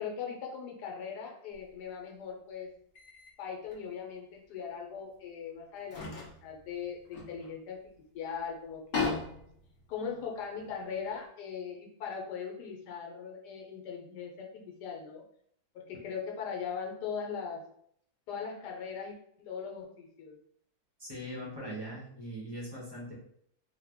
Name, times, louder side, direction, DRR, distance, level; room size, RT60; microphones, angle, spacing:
voice 1, 0.0-2.7 3.4-6.1 6.4-9.2 9.9-15.2 15.7-17.6 18.3-20.4, left 6 dB, 85° left, 1 dB, 1.3 m, -40 dB
sound 1, 1.5-1.7 2.9-3.3 3.7-3.8 5.1-5.2 5.8-8.0 8.3-8.4 8.7-11.1, left 4 dB, 45° left, 0.8 m, -39 dB
voice 2, 21.0-23.1, equal, 25° right, -4 dB, 0.6 m, -41 dB
3.2 x 2.2 x 3.4 m, 0.67 s
omnidirectional pair, 1.7 m